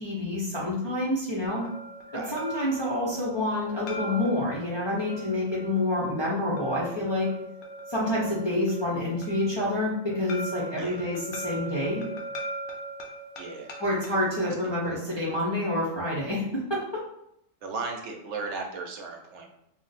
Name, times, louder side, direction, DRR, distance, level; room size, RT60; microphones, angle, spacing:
voice 1, 0.0-1.6 2.1-7.3 7.9-12.0 13.8-17.0, left 1 dB, 30° left, -7 dB, 0.5 m, -28 dB
sound 1, 1.5-15.3, right 2 dB, 80° left, 0.9 m, -40 dB
voice 2, 13.4-13.7 14.4-14.5 17.6-19.5, right 4 dB, 75° right, 2 dB, 0.9 m, -36 dB
2.5 x 2.1 x 3.9 m, 0.78 s
omnidirectional pair, 1.2 m